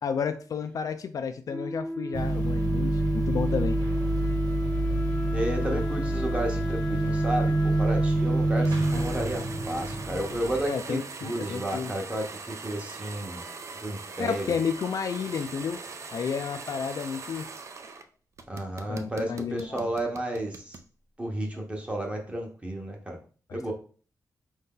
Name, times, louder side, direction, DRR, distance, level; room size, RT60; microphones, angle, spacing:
voice 1, 0.0-3.8 5.6-5.8 8.9-9.1 10.7-11.9 14.2-15.8 16.1-17.5 18.9-19.9 23.5-23.7, left 6 dB, 60° left, 9 dB, 0.3 m, -31 dB
Wind instrument woodwind instrument, 1.5-10.2, equal, 15° left, 0.6 m, -34 dB
sound 1, 2.1-10.7, right 2 dB, 85° right, 1.4 m, -27 dB
voice 2, 5.3-13.4 13.8-14.6 18.5-20.8 21.2-23.2 23.5-23.7, right 1 dB, 15° right, 1 dB, 0.9 m, -32 dB
sound 2, 8.6-18.0 18.4-20.9, right 4 dB, 45° right, 0.4 m, -41 dB
4.6 x 2.7 x 3.7 m, 0.40 s
wide cardioid pair, 170°, 7 cm